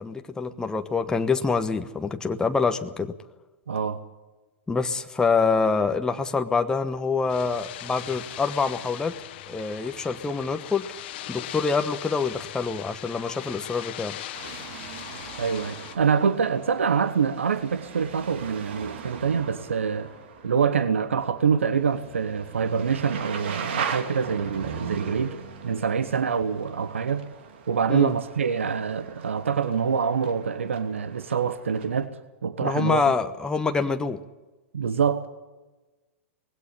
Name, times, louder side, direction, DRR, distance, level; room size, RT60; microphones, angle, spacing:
voice 1, 0.0-3.1 4.7-9.2 9.5-10.9 11.3-14.1 27.9-28.1 32.6-34.2, left 4 dB, 10° left, 7 dB, 1.1 m, -26 dB
voice 2, 3.7-4.0 15.4-20.1 20.4-25.4 25.6-27.2 27.7-32.1 32.4-33.0 34.7-35.3, right 6 dB, 75° right, 13 dB, 1.1 m, -25 dB
sound 1, 7.3-16.0, left 13 dB, 50° left, 1.5 m, -39 dB
sound 2, 14.3-32.1, right 6 dB, 60° right, 2.6 m, -39 dB
20.0 x 16.5 x 10.0 m, 1.2 s
figure-of-eight pair, 100°, 7 cm